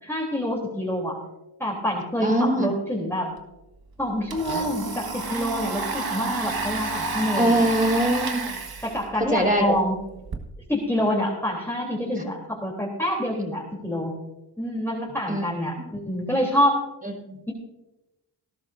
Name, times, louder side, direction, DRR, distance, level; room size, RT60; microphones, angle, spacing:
voice 1, 0.0-1.2 1.6-3.3 4.0-7.5 8.8-9.9 10.7-14.2 14.6-16.8 17.5-17.6, equal, 5° left, -3 dB, 3.3 m, -26 dB
voice 2, 2.2-2.7 7.4-8.4 9.2-9.8 15.3-15.5 17.0-17.4, right 1 dB, 20° right, 1 dB, 4.7 m, -22 dB
Domestic sounds home sounds, 3.4-3.5 3.8-10.4, right 3 dB, 50° right, 1.6 m, -31 dB
19.5 x 12.0 x 2.6 m, 0.95 s
cardioid pair, 55°, 46 cm